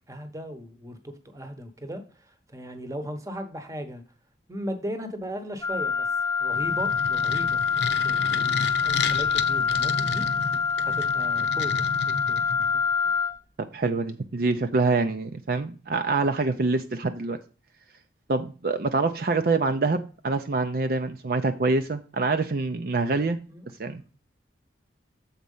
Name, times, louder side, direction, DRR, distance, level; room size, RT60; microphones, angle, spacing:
voice 1, 0.1-2.0 2.5-4.0 4.5-6.1 6.4-7.6 8.0-10.3 10.8-12.7 23.5-23.7, equal, 15° right, 7 dB, 0.9 m, -37 dB
Wind instrument woodwind instrument, 5.6-13.4, left 6 dB, 15° left, 0.5 m, -25 dB
sound 1, 6.5-12.8, left 4 dB, 70° left, 0.8 m, -33 dB
voice 2, 13.7-17.4 18.3-23.4 23.8-24.0, right 3 dB, 50° right, 7 dB, 0.5 m, -25 dB
7.4 x 4.4 x 5.4 m, 0.36 s
head